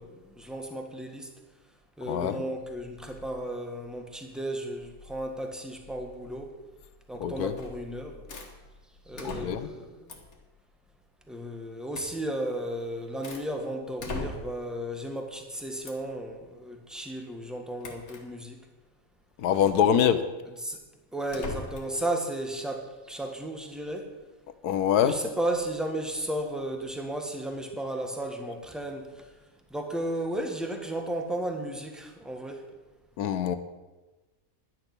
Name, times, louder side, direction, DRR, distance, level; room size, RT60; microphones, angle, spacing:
voice 1, 0.0-1.3 2.0-6.5 7.1-8.2 9.1-10.1 11.3-18.6 19.6-20.2 20.5-20.8 21.1-24.1 25.0-29.2 29.7-32.6, right 1 dB, ahead, 3 dB, 1.4 m, -34 dB
voice 2, 7.2-7.5 9.2-9.7 19.4-20.2 24.6-25.1 33.2-33.5, left 9 dB, 85° left, 11 dB, 1.4 m, -24 dB
sound 1, 7.6-7.9 8.3-8.5 9.2-9.8 10.1-10.4 11.9-12.2 12.7-13.5 14.0-14.7 15.8-16.1 17.8-18.2 19.5-19.8 21.3-22.0, left 3 dB, 65° left, 2.0 m, -39 dB
11.5 x 9.9 x 6.0 m, 1.2 s
omnidirectional pair, 1.6 m